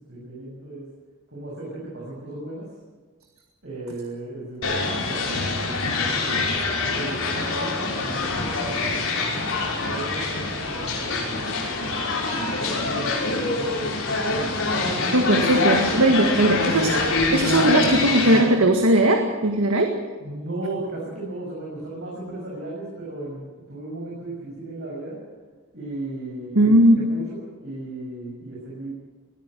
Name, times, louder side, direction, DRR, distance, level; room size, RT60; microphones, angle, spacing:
voice 1, 0.1-0.8 1.3-2.6 3.6-6.2 6.9-9.2 9.8-11.3 14.1-15.3 20.2-25.2 25.7-28.9, right 2 dB, 55° right, -5 dB, 6.9 m, -35 dB
sound 1, 4.6-18.4, left 3 dB, 80° left, 6.1 m, -25 dB
voice 2, 15.1-16.9 17.3-19.9 26.6-27.0, right 1 dB, 85° right, 3 dB, 1.9 m, -18 dB
21.5 x 14.0 x 9.4 m, 1.3 s
head